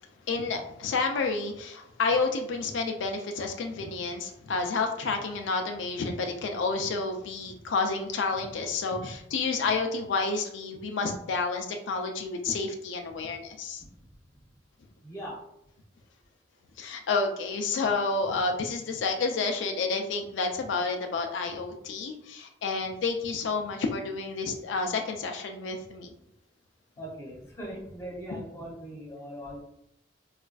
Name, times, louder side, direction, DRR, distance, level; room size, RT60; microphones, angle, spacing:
voice 1, 0.3-13.8 16.8-26.1, left 4 dB, 75° left, 4 dB, 0.4 m, -30 dB
voice 2, 15.0-15.4 27.0-29.6, equal, 15° left, -4 dB, 0.7 m, -40 dB
4.1 x 2.4 x 2.2 m, 0.79 s
head